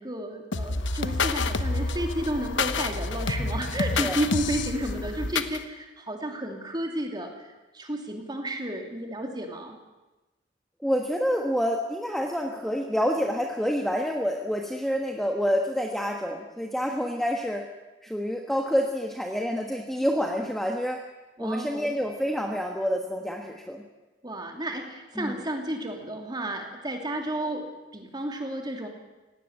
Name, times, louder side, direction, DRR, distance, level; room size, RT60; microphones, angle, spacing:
voice 1, 0.0-7.5 7.7-9.8 21.4-22.0 24.2-27.7 27.9-28.9, right 1 dB, 20° right, 3 dB, 2.9 m, -32 dB
sound 1, 0.5-5.6, left 3 dB, 70° left, 1.1 m, -28 dB
voice 2, 3.7-4.2 10.8-17.6 18.0-21.0 21.4-23.8 25.2-25.4, equal, ahead, 2 dB, 1.3 m, -28 dB
18.0 x 17.0 x 8.9 m, 1.1 s
head